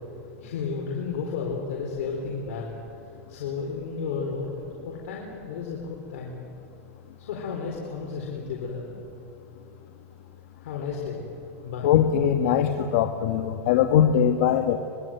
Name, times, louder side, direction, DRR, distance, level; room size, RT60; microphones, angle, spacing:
voice 1, 0.4-2.7 3.1-6.4 7.2-8.9 10.6-11.2 11.6-11.9, left 5 dB, 80° left, -1 dB, 4.4 m, -33 dB
voice 2, 11.8-14.8, left 9 dB, 65° left, 7 dB, 1.4 m, -21 dB
25.0 x 21.0 x 9.2 m, 2.7 s
supercardioid pair, 140°, 8 cm